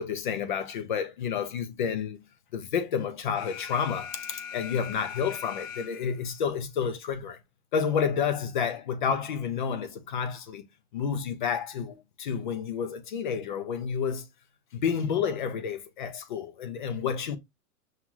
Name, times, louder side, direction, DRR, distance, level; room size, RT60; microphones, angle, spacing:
voice 1, 0.0-2.2 2.5-7.4 7.7-10.7 10.9-14.3 14.7-17.4, left 7 dB, 35° left, 0.4 m, -30 dB
Alarm, 3.4-6.3, left 8 dB, 65° left, 1.0 m, -40 dB
5.5 x 2.4 x 2.9 m
hypercardioid pair, 160°, 44 cm